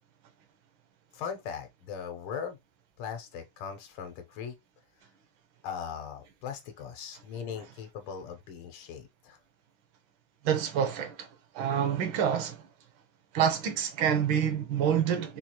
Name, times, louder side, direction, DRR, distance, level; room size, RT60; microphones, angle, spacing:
voice 1, 1.1-2.6 3.0-4.5 5.6-9.4, left 7 dB, 80° left, 1.6 m, -39 dB
voice 2, 10.4-11.3 11.5-12.6 13.3-15.4, right 8 dB, 75° right, 1.4 m, -27 dB
4.5 x 2.3 x 2.9 m
omnidirectional pair, 2.3 m